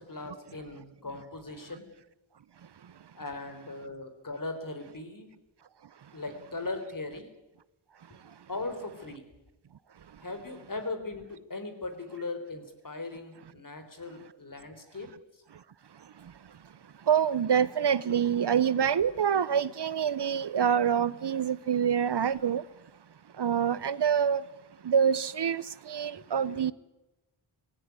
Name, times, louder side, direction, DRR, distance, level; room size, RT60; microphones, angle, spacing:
voice 1, 0.0-1.8 3.2-5.3 6.1-7.3 8.5-9.2 10.2-15.1, left 2 dB, 40° left, 4.0 m, -39 dB
voice 2, 15.9-16.7 17.0-22.7 23.3-24.5 24.8-26.7, right 8 dB, 55° right, 0.8 m, -27 dB
20.0 x 16.5 x 9.6 m
wide cardioid pair, 75°, 47 cm